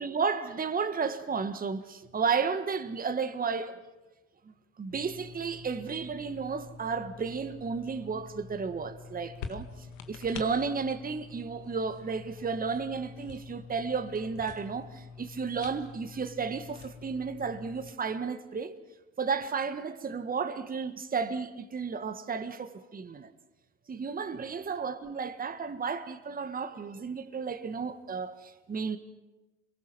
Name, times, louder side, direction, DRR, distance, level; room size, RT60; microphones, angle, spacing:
voice 1, 0.0-3.8 4.8-9.7 10.1-18.8 19.2-23.3 23.9-29.0, right 5 dB, 25° right, 1.6 m, -33 dB
sound 1, 4.9-17.9, left 5 dB, 75° left, 2.0 m, -46 dB
27.0 x 23.0 x 6.2 m
hypercardioid pair, 80°, 36 cm